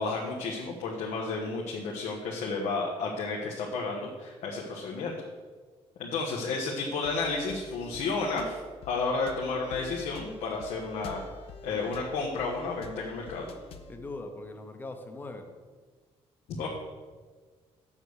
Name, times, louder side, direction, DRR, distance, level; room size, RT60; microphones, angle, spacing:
voice 1, 0.0-5.1 6.0-8.6 8.9-11.2 11.6-13.5 16.5-16.7, left 3 dB, 90° left, -2 dB, 1.3 m, -32 dB
sound 1, 7.0-14.0, left 4 dB, 55° left, 0.7 m, -47 dB
voice 2, 13.9-15.5, left 2 dB, 15° left, 6 dB, 0.8 m, -40 dB
7.3 x 7.1 x 6.4 m, 1.4 s
cardioid pair, 180°, 12 cm